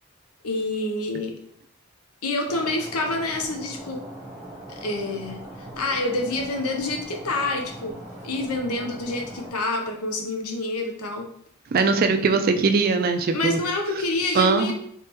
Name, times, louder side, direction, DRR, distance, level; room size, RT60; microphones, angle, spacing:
voice 1, 0.4-1.3 2.2-4.0 4.7-8.0 8.2-11.3 13.3-14.7, left 2 dB, 90° left, 3 dB, 0.7 m, -27 dB
Stream, 2.5-9.5, right 1 dB, 5° right, 0.9 m, -40 dB
voice 2, 11.7-13.6 14.4-14.7, right 4 dB, 40° right, 7 dB, 0.3 m, -20 dB
3.4 x 3.2 x 2.9 m, 0.67 s
head